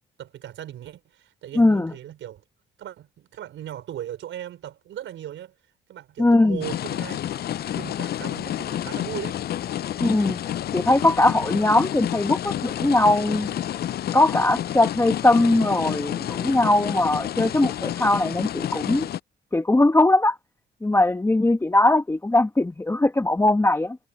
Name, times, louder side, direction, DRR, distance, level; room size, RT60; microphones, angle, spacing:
voice 1, 0.2-2.4 2.8-7.2 7.7-9.4, right 11 dB, 75° right, 5.5 m, -38 dB
voice 2, 1.6-1.9 6.2-6.6 10.0-10.4 10.7-13.8 14.1-19.1 19.5-20.4 20.8-24.0, left 2 dB, 15° left, 1.1 m, -20 dB
sound 1, 6.6-19.2, left 11 dB, 55° left, 0.5 m, -29 dB
cardioid pair, 90°, 20 cm